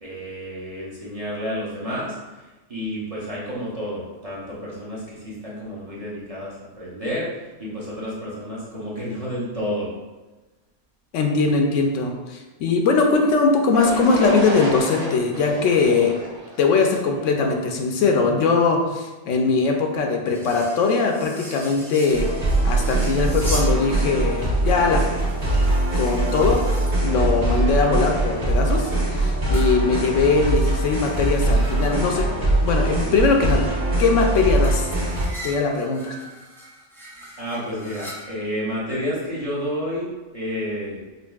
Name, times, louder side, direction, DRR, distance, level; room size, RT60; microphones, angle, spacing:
voice 1, 0.0-2.1 2.7-7.3 7.6-9.9 37.4-41.0, equal, 35° right, -7 dB, 0.7 m, -30 dB
voice 2, 11.1-16.1 16.6-22.3 22.6-25.0 26.0-26.6 27.0-32.3 32.6-33.7 34.0-34.9 35.4-36.2, left 4 dB, 80° left, 2 dB, 0.9 m, -21 dB
sound 1, 13.7-17.6, right 1 dB, 80° right, 1.1 m, -31 dB
sound 2, 20.3-23.8 24.4-27.0 29.5-32.1 34.6-38.7, equal, 5° left, 0.4 m, -40 dB
sound 3, 22.1-35.3, right 2 dB, 55° right, 1.4 m, -22 dB
5.0 x 2.5 x 2.3 m, 1.2 s
omnidirectional pair, 1.3 m